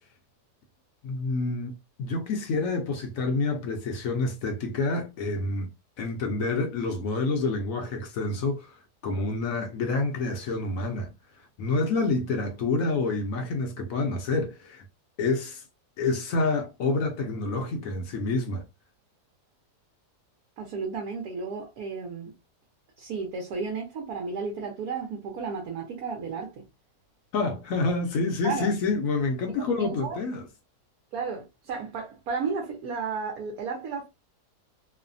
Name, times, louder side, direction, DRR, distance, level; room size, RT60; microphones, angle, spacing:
voice 1, 1.0-11.1 11.6-14.8 15.2-15.6 16.0-18.6 27.3-30.4, left 3 dB, 65° left, 0.9 m, -28 dB
voice 2, 20.6-22.3 23.0-26.6 28.4-28.7 29.6-30.2 31.1-34.1, right 5 dB, 70° right, 1.2 m, -33 dB
3.1 x 2.1 x 2.5 m
omnidirectional pair, 1.7 m